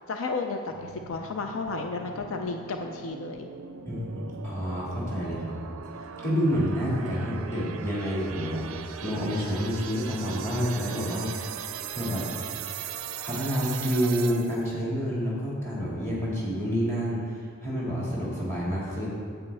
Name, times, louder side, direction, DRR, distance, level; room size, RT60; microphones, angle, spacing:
voice 1, 0.1-3.5, left 3 dB, 70° left, 4 dB, 0.5 m, -32 dB
sound 1, 0.7-14.7, right 8 dB, 75° right, 0.4 m, -39 dB
voice 2, 3.8-5.7 6.2-8.7 9.0-11.3 11.9-12.3 13.2-17.2 17.6-19.1, equal, 15° left, -7 dB, 2.1 m, -28 dB
9.3 x 8.0 x 3.4 m, 2.2 s
head